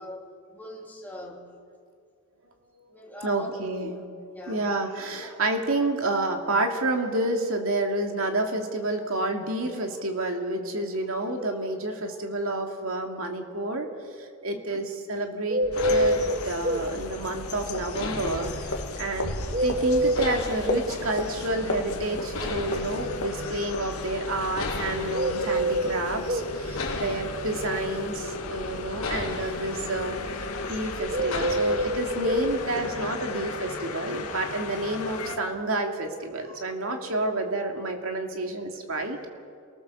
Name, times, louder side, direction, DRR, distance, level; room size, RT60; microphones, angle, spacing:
voice 1, 0.0-1.5 2.9-3.9 4.3-4.7 5.1-5.4 14.5-14.8, left 1 dB, 10° left, -2 dB, 3.1 m, -42 dB
voice 2, 3.2-4.0 4.5-13.9 14.2-15.6 15.9-19.4 19.6-30.2 30.7-39.3, right 2 dB, 65° right, 3 dB, 2.6 m, -29 dB
sound 1, 15.5-16.9 19.5-20.9 25.1-26.5 31.1-32.5, right 1 dB, 40° right, 1.3 m, -25 dB
sound 2, 15.6-32.6, left 3 dB, 65° left, 3.7 m, -38 dB
sound 3, 15.7-35.4, left 2 dB, 90° left, 2.4 m, -35 dB
29.5 x 19.0 x 7.1 m, 2.2 s
head